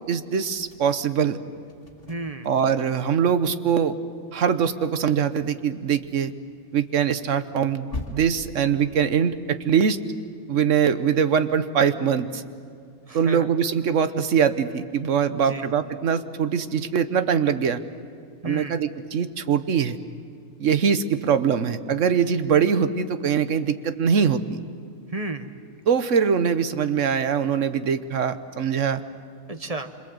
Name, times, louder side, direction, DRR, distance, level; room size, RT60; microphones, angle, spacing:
voice 1, 0.1-1.4 2.4-3.9 4.3-6.3 6.7-10.0 10.5-12.4 13.1-17.8 18.4-20.0 20.6-24.4 25.9-29.0, right 7 dB, 60° right, 12 dB, 1.3 m, -22 dB
sound 1, 0.5-3.1 3.4-3.6 3.9-4.0 4.3-4.4 5.0-6.5 6.8-9.3, left 2 dB, 40° left, 2.3 m, -41 dB
voice 2, 2.1-2.6 13.1-13.5 15.3-15.7 18.4-18.8 25.1-25.5 29.5-29.9, right 2 dB, 30° right, 8 dB, 1.1 m, -33 dB
27.0 x 25.5 x 7.9 m, 2.3 s
omnidirectional pair, 1.5 m